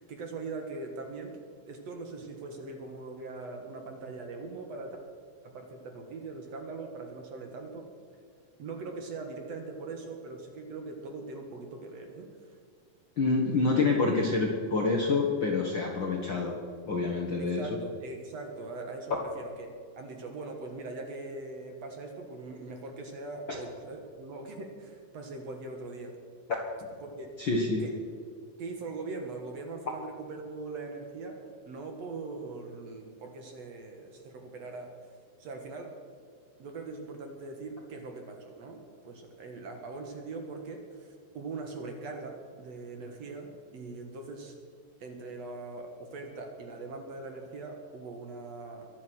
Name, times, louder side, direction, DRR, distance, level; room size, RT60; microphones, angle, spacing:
voice 1, 0.0-1.4 1.7-5.0 5.4-7.9 8.6-12.6 17.4-19.7 20.0-26.1 27.0-27.3 27.8-27.9 28.6-31.4 31.7-35.9 36.6-44.6 45.0-48.9, right 3 dB, 55° right, 3 dB, 2.3 m, -41 dB
voice 2, 13.2-16.5 16.8-17.6 27.4-27.8, left 3 dB, 50° left, -1 dB, 1.5 m, -27 dB
23.0 x 8.4 x 6.3 m, 2.2 s
omnidirectional pair, 4.1 m